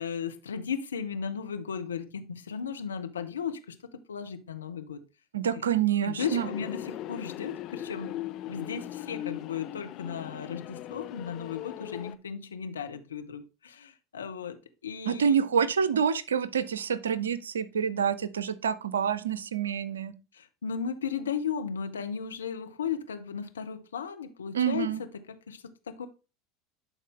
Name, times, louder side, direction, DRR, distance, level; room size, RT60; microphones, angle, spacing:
voice 1, 0.0-5.0 5.5-5.7 6.0-8.1 8.5-15.4 20.3-26.1, left 7 dB, 80° left, 0.8 m, -36 dB
voice 2, 5.3-6.5 15.1-20.1 24.5-25.0, right 7 dB, 75° right, 0.6 m, -27 dB
sound 1, 6.2-12.2, left 13 dB, 45° left, 0.6 m, -39 dB
11.0 x 4.3 x 3.4 m
figure-of-eight pair, 75°, 0 cm